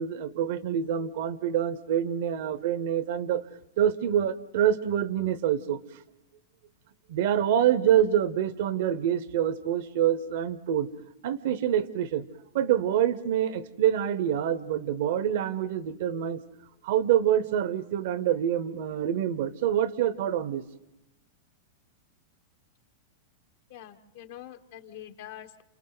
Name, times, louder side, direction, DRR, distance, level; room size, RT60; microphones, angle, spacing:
voice 1, 0.0-3.4 3.8-5.8 7.1-10.9 11.2-12.3 12.5-16.4 16.8-20.6, right 10 dB, 65° right, 16 dB, 1.0 m, -26 dB
voice 2, 23.7-25.6, left 11 dB, 65° left, 7 dB, 1.3 m, -45 dB
29.5 x 27.5 x 4.0 m, 0.96 s
hypercardioid pair, 130°, 0 cm